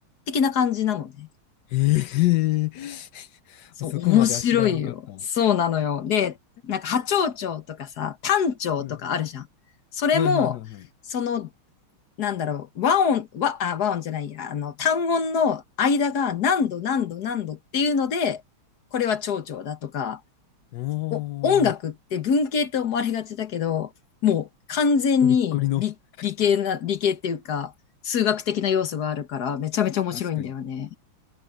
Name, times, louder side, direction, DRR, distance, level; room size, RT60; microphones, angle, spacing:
voice 1, 0.3-1.3 3.8-6.4 6.6-9.5 9.9-10.6 11.1-11.5 12.2-18.4 18.9-20.2 21.1-23.9 24.2-25.9 26.2-27.7 28.0-31.0, left 7 dB, 50° left, 1.8 m, -24 dB
voice 2, 1.7-5.2 8.8-8.9 10.1-10.8 20.7-21.7 25.2-25.8 26.2-26.3 30.1-30.5, left 18 dB, 65° left, 1.2 m, -27 dB
omnidirectional pair, 2.3 m